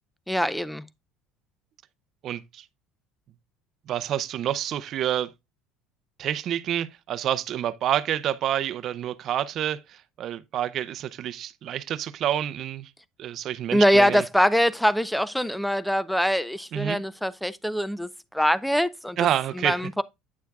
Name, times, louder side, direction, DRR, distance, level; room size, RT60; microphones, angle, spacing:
voice 1, 0.3-0.9 13.7-19.2 19.6-20.0, equal, ahead, 0.5 m, -23 dB
voice 2, 2.2-2.6 3.9-5.3 6.2-12.9 13.2-14.2 16.7-17.0 19.2-19.8, right 11 dB, 45° right, 0.6 m, -28 dB
9.4 x 6.8 x 2.4 m
cardioid pair, 140°, 0 cm